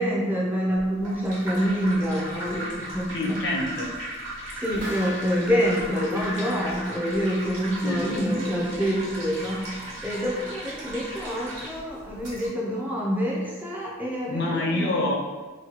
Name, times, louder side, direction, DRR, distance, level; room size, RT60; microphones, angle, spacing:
voice 1, 0.0-3.3 4.6-9.6 10.0-14.9, equal, 10° right, -4 dB, 0.5 m, -26 dB
sound 1, 0.8-12.5, right 1 dB, 70° right, 1.3 m, -37 dB
voice 2, 3.1-3.9 7.8-8.4 14.3-15.1, left 2 dB, 55° left, -1 dB, 0.5 m, -27 dB
sound 2, 4.5-8.0 8.3-8.4, left 2 dB, 50° right, 0.9 m, -40 dB
3.0 x 2.2 x 2.9 m, 1.3 s
head